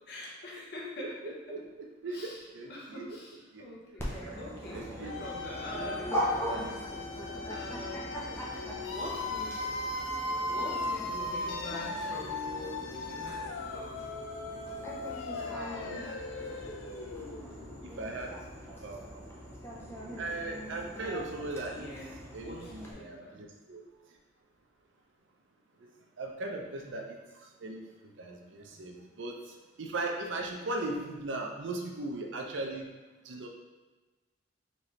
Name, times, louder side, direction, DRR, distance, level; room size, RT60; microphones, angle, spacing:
voice 1, 0.1-1.3 2.1-2.4 2.7-7.2 7.5-8.3 8.5-8.6 8.9-9.8 10.5-14.0 21.7-23.4 28.7-28.8, left 1 dB, 60° left, -3 dB, 0.9 m, -44 dB
voice 2, 1.0-3.2 3.5-3.6 4.7-5.3 5.7-6.0 6.5-6.7 17.8-18.3 18.8-19.1 20.2-21.9 22.3-23.8 25.8-25.9 26.2-27.2 27.6-27.9 28.2-29.3 29.8-32.9 33.2-33.5, right 2 dB, 70° right, 2 dB, 0.6 m, -38 dB
Dog, 4.0-22.9, equal, 15° left, 0.6 m, -41 dB
sound 1, 5.0-17.8, left 2 dB, 90° left, 0.4 m, -38 dB
4.2 x 3.2 x 3.0 m, 1.2 s
head